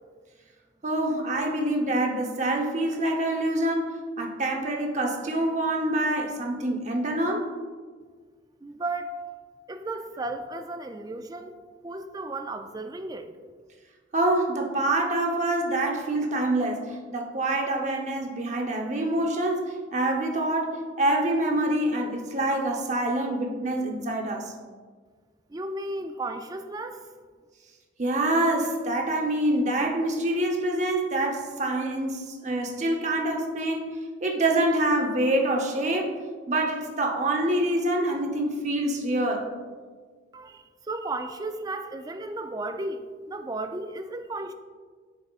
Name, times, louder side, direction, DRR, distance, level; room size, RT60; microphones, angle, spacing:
voice 1, 0.8-3.9 4.2-7.4 14.1-24.5 28.0-36.1 36.5-39.5, right 1 dB, 40° right, 1 dB, 0.9 m, -26 dB
voice 2, 8.6-9.2 9.7-11.6 11.8-13.3 25.5-27.0 40.3-44.5, right 2 dB, 20° right, 8 dB, 0.3 m, -34 dB
8.5 x 6.9 x 2.4 m, 1.6 s
head